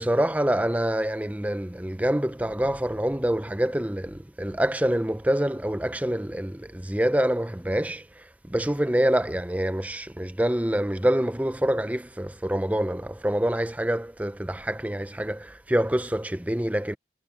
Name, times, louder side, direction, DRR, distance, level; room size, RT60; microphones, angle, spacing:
voice 1, 0.0-17.0, right 1 dB, 10° right, 0.6 m, -26 dB
head